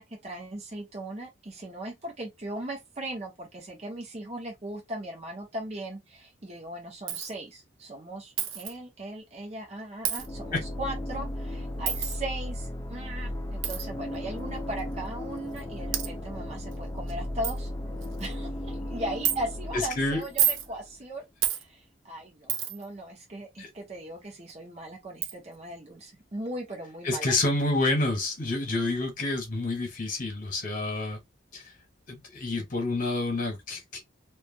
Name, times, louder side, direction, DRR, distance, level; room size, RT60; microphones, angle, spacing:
voice 1, 0.0-17.7 18.2-21.2 21.5-27.4, right 1 dB, 35° right, 0.8 m, -38 dB
Coin (dropping), 7.1-7.3 8.4-8.7 10.0-10.3 11.9-12.2 13.6-13.8 14.8-14.9 15.6-15.7 15.9-16.1 16.7-16.8 17.1-17.2 17.4-17.6 18.0-18.3 19.3-19.4 20.2-20.7 21.4-21.6 22.5-22.9 24.5-24.6 25.2-25.3, right 10 dB, 80° right, 0.6 m, -28 dB
sound 1, 10.2-21.0, left 1 dB, 15° left, 0.4 m, -36 dB
voice 2, 27.0-31.2 31.5-31.7 32.1-34.0, left 2 dB, 45° left, 1.1 m, -28 dB
2.8 x 2.3 x 2.6 m
head